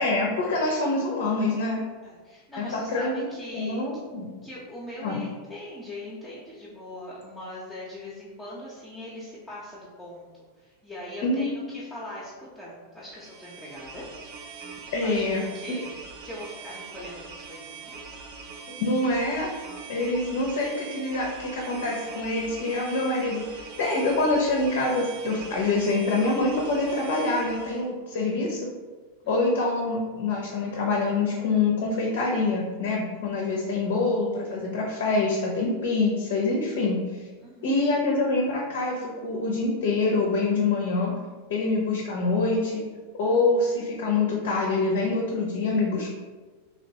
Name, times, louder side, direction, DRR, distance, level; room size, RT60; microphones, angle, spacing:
voice 1, 0.0-1.8 2.6-3.1 3.5-4.3 5.0-5.2 11.2-11.7 14.9-15.4 18.8-19.5 19.9-28.6 29.3-37.0 37.6-41.1 41.5-42.8 43.1-46.1, left 3 dB, 55° left, -1 dB, 0.5 m, -25 dB
voice 2, 2.0-3.8 4.4-10.3 10.6-14.1 15.0-15.2 15.5-18.2 28.1-28.4 29.2-29.6 37.4-37.8, left 1 dB, 10° left, -8 dB, 0.6 m, -41 dB
sound 1, 13.1-27.9, right 5 dB, 45° right, 0.4 m, -42 dB
3.0 x 2.9 x 2.7 m, 1.4 s
figure-of-eight pair, 90°, 0 cm